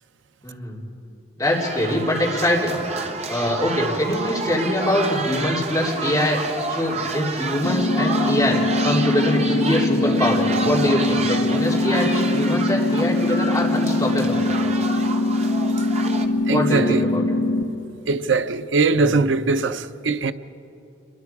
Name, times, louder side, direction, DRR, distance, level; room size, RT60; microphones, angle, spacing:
voice 1, 0.4-0.8 1.4-6.4 6.7-14.4 16.5-17.2 18.9-19.2, left 1 dB, 15° left, 3.6 m, -23 dB
sound 1, 1.4-16.3, right 3 dB, 35° right, 1.2 m, -30 dB
sound 2, 7.6-17.6, left 2 dB, 70° left, 1.2 m, -22 dB
voice 2, 16.4-17.4 18.0-20.3, right 4 dB, 85° right, 0.6 m, -21 dB
27.5 x 22.5 x 4.8 m
head